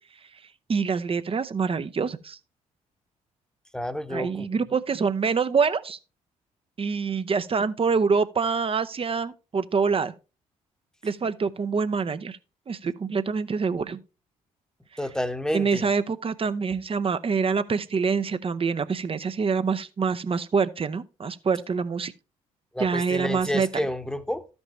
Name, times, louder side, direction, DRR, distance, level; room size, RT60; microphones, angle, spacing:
voice 1, 0.7-2.4 4.1-6.0 6.8-10.1 11.0-12.4 12.7-14.0 15.5-22.1 22.8-23.8, right 5 dB, 30° right, 0.7 m, -25 dB
voice 2, 3.7-4.5 15.0-15.8 22.7-24.5, left 1 dB, 5° left, 1.0 m, -29 dB
13.5 x 5.3 x 3.0 m
figure-of-eight pair, 45°, 18 cm